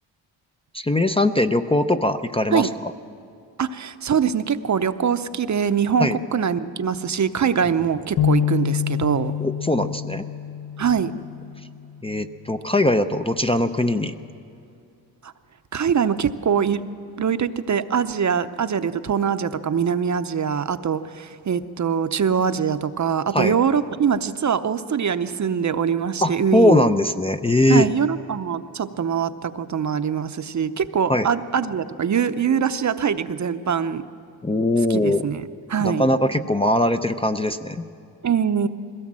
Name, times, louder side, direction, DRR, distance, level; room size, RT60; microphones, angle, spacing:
voice 1, 0.7-2.9 6.0-6.2 9.4-10.2 12.0-14.1 23.3-23.5 26.2-27.9 31.1-31.3 34.4-35.3 35.8-37.8, left 1 dB, 15° left, 8 dB, 0.5 m, -21 dB
voice 2, 3.6-9.3 10.8-11.1 15.2-15.3 15.7-16.8 17.2-26.8 27.7-34.0 34.9-35.4 35.7-36.1 38.2-38.7, right 7 dB, 40° right, 11 dB, 0.7 m, -23 dB
sound 1, 8.2-11.7, left 9 dB, 60° left, 1.0 m, -26 dB
21.5 x 17.0 x 7.5 m, 2.5 s
cardioid pair, 100°, 44 cm